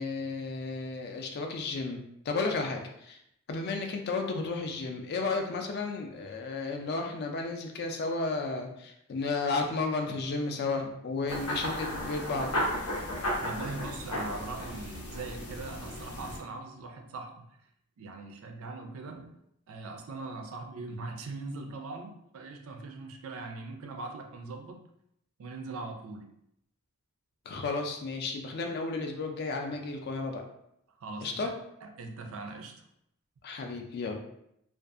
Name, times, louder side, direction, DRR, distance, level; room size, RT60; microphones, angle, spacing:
voice 1, 0.0-3.2 3.5-12.5 27.5-30.5 31.2-31.5 33.4-34.2, left 3 dB, 45° left, 3 dB, 0.3 m, -33 dB
sound 1, 11.3-16.4, equal, 90° left, 0.7 m, -34 dB
voice 2, 13.4-17.5 18.0-19.4 19.7-24.8 25.4-26.3 31.0-31.4 31.8-32.7, right 3 dB, 65° right, 4 dB, 0.4 m, -41 dB
2.5 x 2.3 x 2.4 m, 0.75 s
head